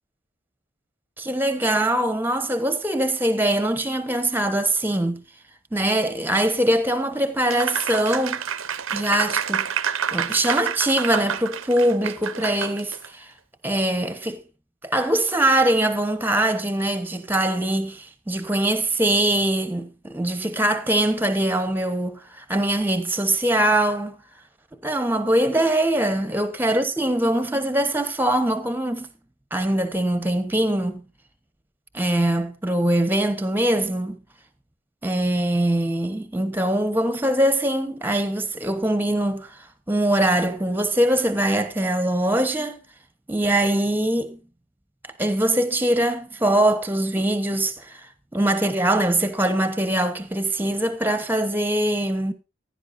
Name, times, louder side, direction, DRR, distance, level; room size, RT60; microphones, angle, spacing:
voice 1, 1.2-5.2 5.7-8.4 8.9-9.7 10.1-13.3 13.6-14.4 14.8-24.2 24.8-29.1 29.5-31.1 31.9-34.2 35.0-39.6 39.9-42.8 43.3-44.4 45.2-48.1 48.3-52.3, right 1 dB, 10° right, 1.2 m, -22 dB
Applause, 7.5-13.1, right 7 dB, 70° right, 0.9 m, -28 dB
16.0 x 11.0 x 2.7 m
head